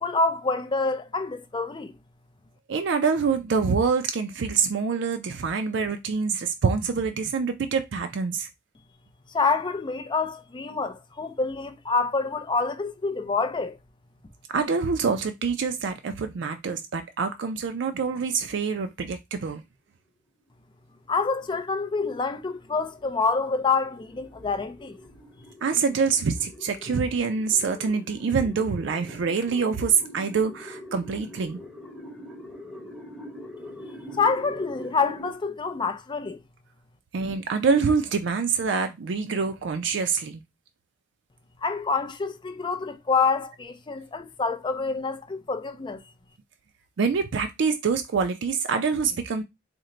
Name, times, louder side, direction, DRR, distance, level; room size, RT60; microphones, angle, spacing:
voice 1, 0.0-2.0 9.3-13.8 21.1-25.0 34.2-36.4 41.6-46.0, left 4 dB, 25° left, 0.4 m, -27 dB
voice 2, 2.7-8.5 14.5-19.6 25.6-31.6 37.1-40.4 47.0-49.4, right 5 dB, 70° right, 0.4 m, -25 dB
sound 1, 21.0-35.3, left 1 dB, ahead, 1.0 m, -44 dB
4.3 x 2.1 x 3.8 m
head